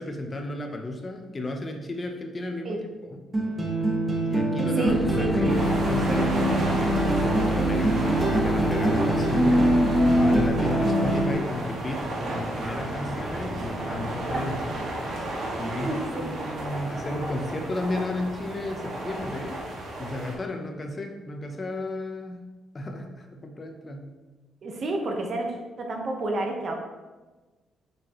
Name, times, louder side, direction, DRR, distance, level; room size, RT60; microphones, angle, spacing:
voice 1, 0.0-2.8 3.1-3.2 4.2-9.9 10.2-14.7 15.6-19.6 20.0-22.4 22.7-24.1, left 2 dB, 30° left, 3 dB, 0.8 m, -33 dB
sound 1, 3.3-11.3, right 1 dB, 25° right, 1.2 m, -23 dB
voice 2, 4.8-5.6 14.3-14.4 15.6-16.6 24.6-26.7, right 2 dB, 50° right, 2 dB, 1.1 m, -30 dB
Boat Water vehicle / Engine, 4.9-10.5, equal, 10° left, 0.4 m, -32 dB
sound 2, 5.5-20.3, right 1 dB, 70° right, 1.8 m, -33 dB
5.8 x 5.3 x 3.0 m, 1.2 s
cardioid pair, 90°, 0 cm